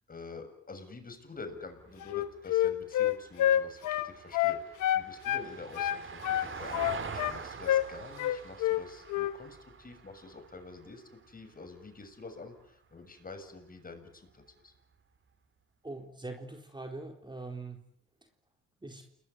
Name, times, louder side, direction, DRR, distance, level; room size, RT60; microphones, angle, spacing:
voice 1, 0.1-14.7, left 3 dB, 30° left, 8 dB, 7.0 m, -47 dB
Vehicle, 1.5-12.0 14.3-14.4, right 5 dB, 40° right, 3.0 m, -46 dB
Wind instrument woodwind instrument, 2.0-5.5 5.8-7.4 7.7-7.9 8.2-8.8 9.1-9.4, left 12 dB, 90° left, 1.6 m, -28 dB
voice 2, 15.8-17.8 18.8-19.0, right 2 dB, 15° right, 3 dB, 4.0 m, -42 dB
29.0 x 21.0 x 9.3 m, 0.72 s
cardioid pair, 90°, 30 cm